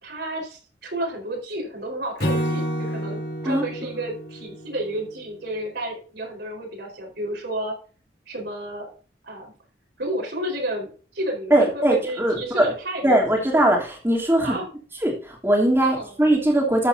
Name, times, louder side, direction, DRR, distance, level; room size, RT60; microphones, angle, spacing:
voice 1, 0.0-7.7 8.3-8.9 9.2-9.5 10.0-13.5 14.4-14.6 15.8-16.1, right 1 dB, 70° right, -1 dB, 4.6 m, -31 dB
Acoustic guitar / Strum, 2.2-5.5, equal, 60° left, 4.1 m, -29 dB
voice 2, 11.5-12.7 13.0-14.6 15.0-16.9, right 1 dB, 15° right, -1 dB, 3.1 m, -20 dB
12.5 x 8.5 x 2.8 m, 0.38 s
head